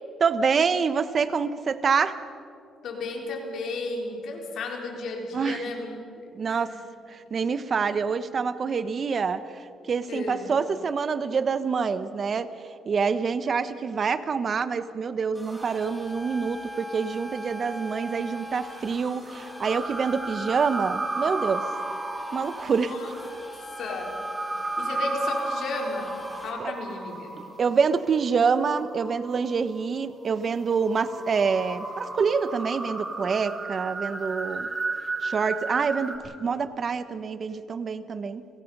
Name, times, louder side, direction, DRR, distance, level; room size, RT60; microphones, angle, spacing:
voice 1, 0.2-2.2 5.3-5.6 6.3-6.7 7.1-12.5 12.9-21.6 22.3-23.0 26.6-26.7 27.6-34.7 35.2-38.4, right 5 dB, 45° right, 13 dB, 1.1 m, -26 dB
voice 2, 2.8-5.9 6.5-6.8 10.1-10.5 22.6-23.1 23.8-24.2 24.8-27.4, left 3 dB, 70° left, 1 dB, 4.2 m, -34 dB
sound 1, 15.3-26.5, equal, 5° right, 5.7 m, -40 dB
sound 2, 19.6-29.7 30.2-36.2, right 3 dB, 30° right, 3.0 m, -34 dB
30.0 x 18.0 x 5.5 m, 2.6 s
cardioid pair, 90°, 0 cm